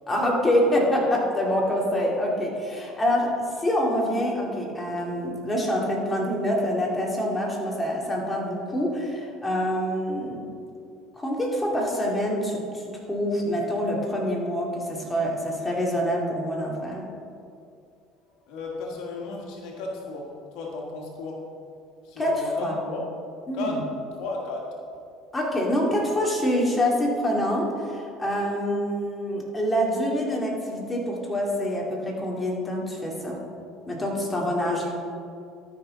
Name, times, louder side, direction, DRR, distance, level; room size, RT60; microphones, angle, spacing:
voice 1, 0.1-3.3 3.6-10.5 11.2-17.0 22.2-22.8 23.5-23.7 25.3-33.4 33.9-34.9, equal, 15° left, -2 dB, 2.4 m, -26 dB
voice 2, 18.4-21.5 22.0-23.1 23.5-23.8 24.1-24.7, left 3 dB, 70° left, -1 dB, 1.6 m, -34 dB
13.0 x 6.1 x 3.9 m, 2.4 s
supercardioid pair, 85°, 0 cm